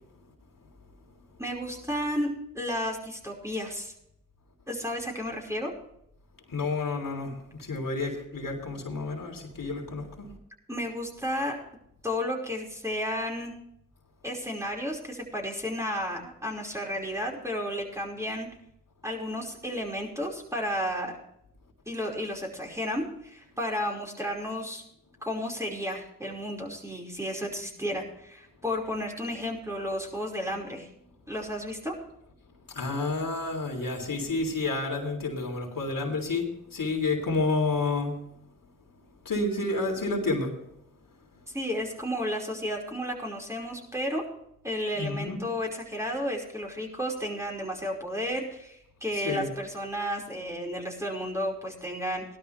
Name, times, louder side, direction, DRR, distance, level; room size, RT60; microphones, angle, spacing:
voice 1, 1.4-3.9 4.7-5.7 10.7-11.6 12.0-13.5 14.2-18.5 19.0-21.1 21.9-24.8 25.2-30.9 31.3-31.9 41.5-44.2 44.6-52.2, equal, 10° right, 0 dB, 5.1 m, -32 dB
voice 2, 6.5-7.3 7.6-10.3 32.7-38.2 39.2-40.5 44.9-45.4 49.1-49.5, left 3 dB, 70° left, 2 dB, 3.4 m, -30 dB
17.0 x 12.5 x 3.4 m, 0.77 s
cardioid pair, 45°, 34 cm